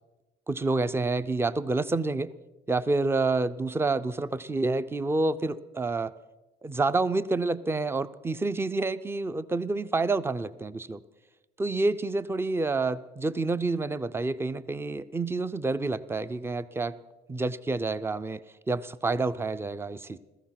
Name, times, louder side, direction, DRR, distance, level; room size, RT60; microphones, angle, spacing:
voice 1, 0.5-2.3 2.7-6.1 6.6-11.0 11.6-16.9 17.3-20.2, right 3 dB, 15° right, 15 dB, 0.5 m, -28 dB
15.5 x 14.0 x 5.8 m, 1.1 s
cardioid pair, 110°, 17 cm